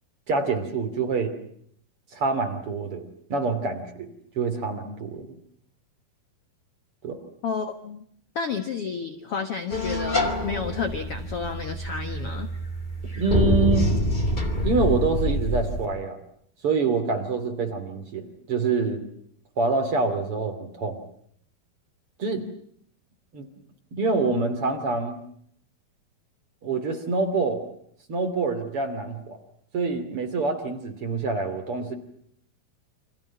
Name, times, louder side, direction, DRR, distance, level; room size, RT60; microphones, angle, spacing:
voice 1, 0.3-1.3 2.1-4.1 4.3-5.4 7.0-7.2 13.2-13.9 14.6-16.2 16.6-19.0 19.6-21.0 22.2-22.5 23.3-23.5 23.9-25.2 26.6-27.6 28.1-29.4 29.7-31.9, right 4 dB, 40° right, 6 dB, 3.3 m, -26 dB
voice 2, 7.4-8.0 8.3-12.5, left 5 dB, 55° left, 8 dB, 1.7 m, -31 dB
sound 1, 9.7-15.8, equal, 15° left, 1.7 m, -26 dB
29.0 x 26.0 x 5.9 m, 0.65 s
omnidirectional pair, 4.5 m